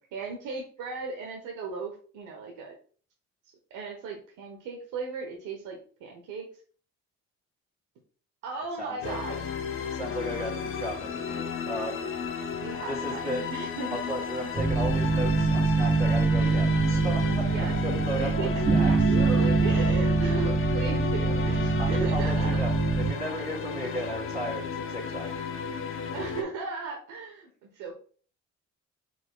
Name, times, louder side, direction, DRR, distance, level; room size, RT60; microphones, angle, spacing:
voice 1, 0.1-2.8 3.7-6.5 8.4-9.4 12.6-13.2 13.5-14.0 16.4-16.5 17.5-17.7 18.2-18.5 18.8-22.7 26.1-27.9, right 4 dB, 90° right, 0 dB, 0.9 m, -36 dB
voice 2, 8.8-9.2 9.9-12.0 12.8-13.5 13.9-19.1 21.8-22.7 23.0-25.3, right 1 dB, 20° right, -7 dB, 1.8 m, -35 dB
sound 1, 9.0-26.4, left 6 dB, 45° left, 0.7 m, -34 dB
sound 2, 14.5-23.1, right 3 dB, 45° right, 1.9 m, -24 dB
4.9 x 4.2 x 2.2 m, 0.42 s
cardioid pair, 90°, 30 cm